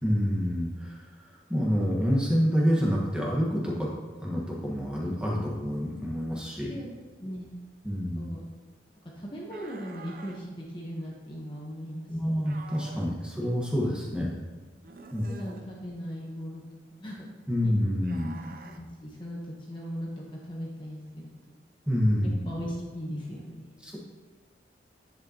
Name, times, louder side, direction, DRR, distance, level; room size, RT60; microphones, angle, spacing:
voice 1, 0.0-3.9 4.2-6.7 7.8-8.3 12.1-14.4 15.1-15.2 17.5-18.4 21.9-22.3 23.8-24.0, equal, 5° right, -4 dB, 1.5 m, -27 dB
voice 2, 7.9-8.4 9.1-12.1 14.7-14.9 15.3-16.6 16.9-17.3 17.6-17.7 18.5-21.6 22.2-23.9, equal, 25° left, -3 dB, 1.1 m, -39 dB
sound 1, 9.5-10.4 12.4-13.2 14.8-15.7 18.0-18.8, right 3 dB, 50° right, 0.6 m, -47 dB
10.0 x 8.3 x 3.0 m, 1.3 s
head